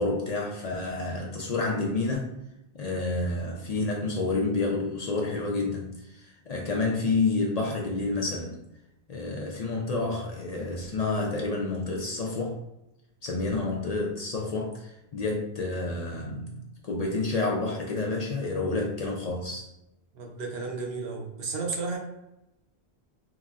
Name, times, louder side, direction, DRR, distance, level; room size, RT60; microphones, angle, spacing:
voice 1, 0.0-2.4 2.7-8.5 9.1-12.6 13.2-19.7, left 3 dB, 55° left, -1 dB, 0.4 m, -29 dB
voice 2, 20.1-22.0, right 4 dB, 70° right, 0 dB, 0.9 m, -33 dB
3.8 x 2.0 x 2.4 m, 0.89 s
omnidirectional pair, 1.1 m